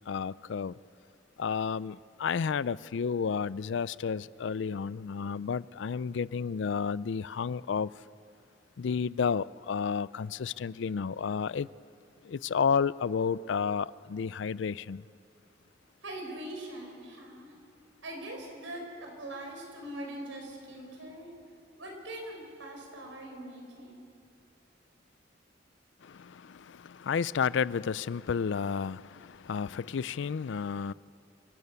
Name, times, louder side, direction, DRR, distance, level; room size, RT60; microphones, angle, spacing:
voice 1, 0.1-0.7 1.4-7.9 8.8-11.7 12.2-15.0 26.0-30.9, left 6 dB, 65° left, 0.4 m, -31 dB
voice 2, 16.0-17.5 18.0-21.3 21.8-24.0, right 1 dB, 85° right, 5.1 m, -42 dB
27.5 x 12.5 x 8.3 m
head